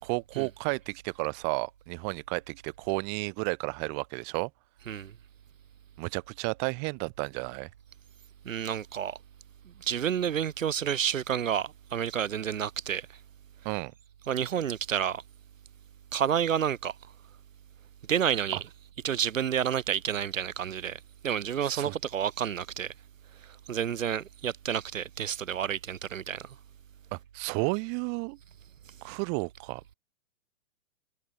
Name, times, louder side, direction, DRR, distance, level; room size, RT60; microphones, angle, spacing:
voice 1, 0.0-4.5 6.0-7.7 13.7-13.9 21.6-22.0 27.1-28.4 29.0-29.9, right 40 dB or more, 25° right, 3.5 m, -32 dB
voice 2, 8.4-9.2 9.6-13.2 14.3-15.2 16.1-17.0 18.1-18.6 19.0-22.9 23.3-26.6 28.9-29.0, right 9 dB, 75° right, 3.1 m, -30 dB
hypercardioid pair, 160°, 40 cm